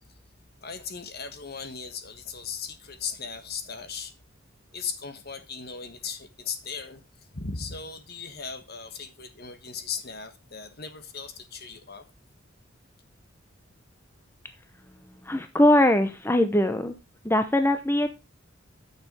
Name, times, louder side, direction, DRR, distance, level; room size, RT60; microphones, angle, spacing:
voice 1, 0.6-4.1 4.7-7.0 7.3-12.1, left 6 dB, 50° left, 1.5 m, -37 dB
voice 2, 15.2-17.0 17.2-18.1, left 1 dB, 10° left, 0.7 m, -21 dB
9.3 x 6.7 x 4.9 m
head